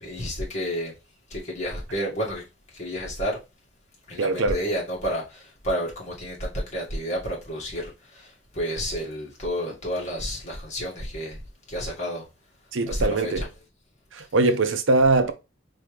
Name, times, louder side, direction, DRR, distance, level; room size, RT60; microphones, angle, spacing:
voice 1, 0.0-0.9 1.3-2.4 2.8-3.4 4.1-7.9 8.5-11.4 11.7-12.2 12.9-13.5, equal, 35° left, 1.9 m, -30 dB
voice 2, 4.2-4.6 12.7-13.5 14.1-15.3, right 3 dB, 75° right, 0.6 m, -22 dB
4.3 x 3.6 x 3.2 m
head